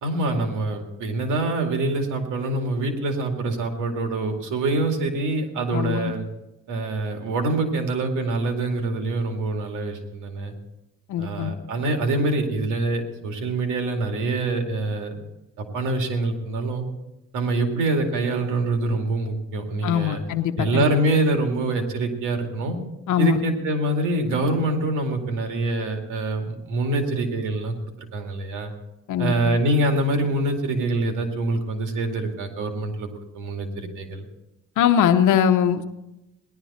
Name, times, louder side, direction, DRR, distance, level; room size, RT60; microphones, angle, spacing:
voice 1, 0.0-6.3 6.7-10.5 11.2-15.2 15.6-16.8 17.3-20.2 20.6-22.8 23.2-28.7 29.2-33.1 33.3-34.2, right 2 dB, 90° right, 4 dB, 2.4 m, -25 dB
voice 2, 5.7-6.2 11.1-11.6 19.8-20.9 23.1-23.4 29.1-29.5 34.8-35.8, left 9 dB, 80° left, 8 dB, 0.9 m, -21 dB
18.0 x 11.5 x 4.2 m, 0.94 s
cardioid pair, 90°, 30 cm